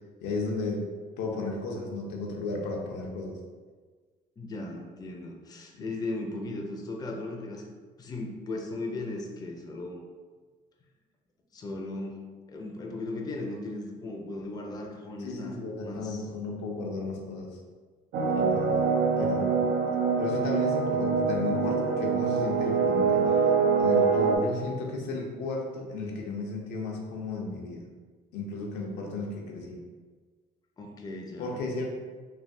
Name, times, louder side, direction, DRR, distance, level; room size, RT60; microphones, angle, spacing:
voice 1, 0.2-0.8 1.2-3.4 5.8-5.9 15.2-17.6 18.3-18.7 19.2-19.6 20.2-23.5 23.8-27.9 28.3-29.8 31.4-31.9, left 3 dB, 90° left, -1 dB, 0.6 m, -34 dB
voice 2, 4.4-7.6 8.0-10.0 11.5-15.6 15.8-16.2 30.8-31.9, left 2 dB, 25° left, 1 dB, 0.4 m, -37 dB
sound 1, 18.1-24.4, right 5 dB, 75° right, 0.5 m, -25 dB
3.2 x 2.2 x 2.6 m, 1.4 s
cardioid pair, 110°, 17 cm